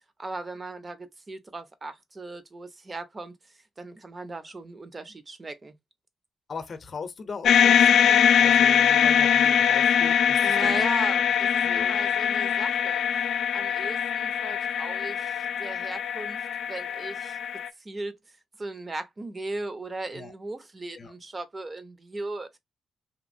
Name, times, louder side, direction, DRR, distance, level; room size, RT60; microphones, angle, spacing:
voice 1, 0.2-3.3 3.8-5.7 10.4-13.0 13.5-17.4 17.8-18.2 18.6-22.6, right 2 dB, 30° right, 0.7 m, -37 dB
voice 2, 6.5-10.8 11.6-12.0 20.1-20.3 21.0-21.1, left 4 dB, 45° left, 0.7 m, -39 dB
sound 1, 7.5-17.7, left 8 dB, 80° left, 0.3 m, -22 dB
3.0 x 2.6 x 2.5 m
cardioid pair, 90°, 0 cm